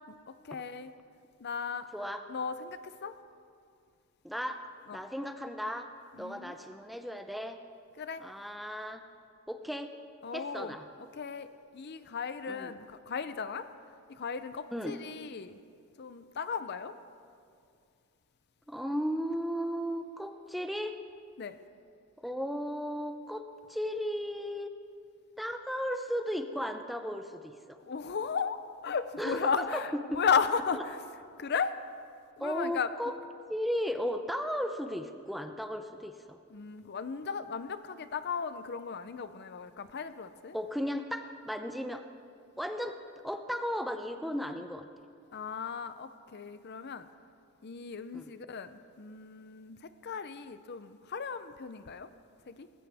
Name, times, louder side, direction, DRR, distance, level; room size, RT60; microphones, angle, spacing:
voice 1, 0.3-0.9 1.4-1.9 2.3-3.1 4.9-5.0 6.1-6.6 8.0-8.2 10.2-10.8 11.1-11.5 11.7-13.7 14.1-15.6 16.0-16.9 21.4-21.6 27.8-31.0 31.4-31.7 32.4-32.9 36.5-40.6 45.3-47.1 47.6-52.1 52.5-52.7, left 6 dB, 50° left, 12 dB, 0.5 m, -35 dB
voice 2, 4.2-4.6 4.9-5.9 6.2-7.6 8.2-9.0 9.5-9.9 10.3-10.9 12.5-12.7 14.7-14.9 18.7-21.0 22.2-24.7 25.4-27.8 29.2-30.2 30.7-30.8 32.4-33.2 33.5-36.4 40.5-42.0 42.6-43.0 43.2-44.9 48.1-48.3, equal, ahead, 7 dB, 0.5 m, -35 dB
19.0 x 16.5 x 3.5 m, 2.4 s
head